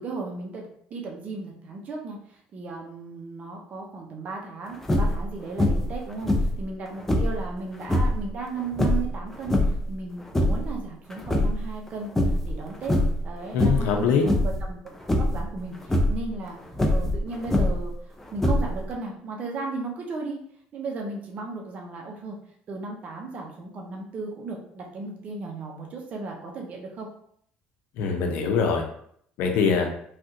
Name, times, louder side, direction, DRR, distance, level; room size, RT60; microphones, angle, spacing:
voice 1, 0.0-9.5 9.9-13.0 13.2-14.4 14.7-14.8 15.2-16.6 16.8-20.4 20.7-22.4 22.7-27.1, right 3 dB, 45° right, 0 dB, 0.6 m, -35 dB
sound 1, 4.8-5.2 5.6-6.0 6.2-7.4 7.8-8.2 8.7-9.9 10.2-10.7 11.1-11.9 12.2-12.5 12.8-13.2 13.6-13.9 14.2-14.6 15.1-15.4 15.8-16.2 16.7-17.9 18.4-18.9, left 1 dB, 10° left, 0.5 m, -23 dB
voice 2, 13.5-14.3 28.0-28.8 29.4-29.9, left 5 dB, 80° left, 3 dB, 0.6 m, -23 dB
3.3 x 2.3 x 2.7 m, 0.65 s
cardioid pair, 105°, 3 cm